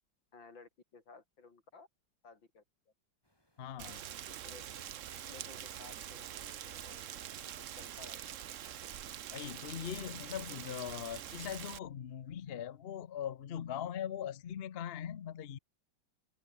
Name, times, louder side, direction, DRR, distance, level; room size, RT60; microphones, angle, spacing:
voice 1, 0.3-1.9 2.2-2.9 3.9-4.2 4.4-4.9 5.3-7.1 7.4-8.8 10.5-10.6, left 4 dB, 80° left, 4.5 m, -57 dB
sound 1, 3.2-8.6, left 1 dB, 10° left, 6.2 m, -76 dB
voice 2, 3.6-4.0 9.3-15.6, left 9 dB, 55° left, 0.6 m, -41 dB
Rain, 3.8-11.8, right 10 dB, 55° right, 0.9 m, -45 dB
omnidirectional pair, 2.1 m